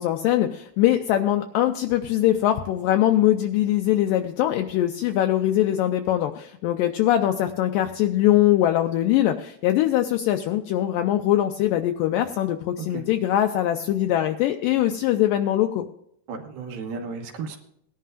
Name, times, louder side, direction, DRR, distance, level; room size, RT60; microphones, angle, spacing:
voice 1, 0.0-15.9, left 12 dB, 85° left, 5 dB, 2.0 m, -22 dB
voice 2, 16.3-17.6, right 5 dB, 75° right, 3 dB, 2.9 m, -34 dB
19.0 x 11.0 x 2.5 m, 0.73 s
omnidirectional pair, 4.5 m